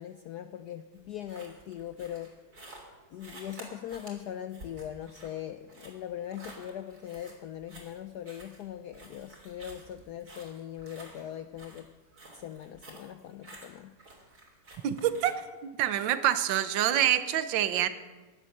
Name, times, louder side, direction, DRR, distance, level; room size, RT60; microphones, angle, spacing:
voice 1, 0.0-2.3 3.1-11.9 12.3-13.9, left 10 dB, 80° left, 10 dB, 0.9 m, -40 dB
sound 1, 0.9-15.3, right 1 dB, 45° right, 3.6 m, -51 dB
voice 2, 14.8-15.4 15.8-17.9, right 11 dB, 65° right, 12 dB, 1.5 m, -26 dB
16.0 x 11.0 x 6.6 m, 1.3 s
omnidirectional pair, 2.3 m